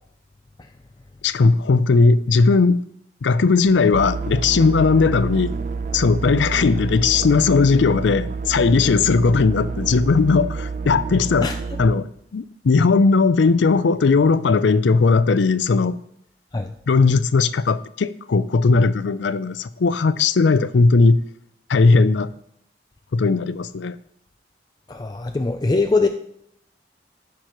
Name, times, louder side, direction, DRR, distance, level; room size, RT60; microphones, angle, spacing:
voice 1, 1.2-2.9 3.2-5.6 5.9-11.5 11.8-16.0 16.9-21.2 21.7-22.3 23.1-24.0, left 4 dB, 85° left, 0.5 m, -17 dB
sound 1, 3.9-12.0, right 4 dB, 45° right, 0.4 m, -28 dB
voice 2, 24.9-26.1, left 3 dB, 20° left, 0.4 m, -21 dB
14.5 x 6.0 x 3.1 m
head